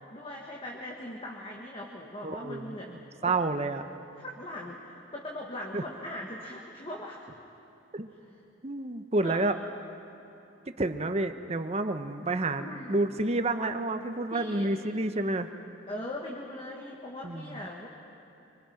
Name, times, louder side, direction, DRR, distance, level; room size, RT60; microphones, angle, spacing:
voice 1, 0.1-3.3 4.2-7.3 9.2-9.4 12.6-12.9 14.3-14.7 15.9-17.9, left 1 dB, 30° left, -2 dB, 1.7 m, -40 dB
voice 2, 2.2-3.8 5.7-5.8 7.9-8.1 8.6-9.5 10.7-15.5 17.2-17.6, right 2 dB, 35° right, 8 dB, 0.9 m, -30 dB
25.5 x 25.0 x 5.9 m, 2.9 s
head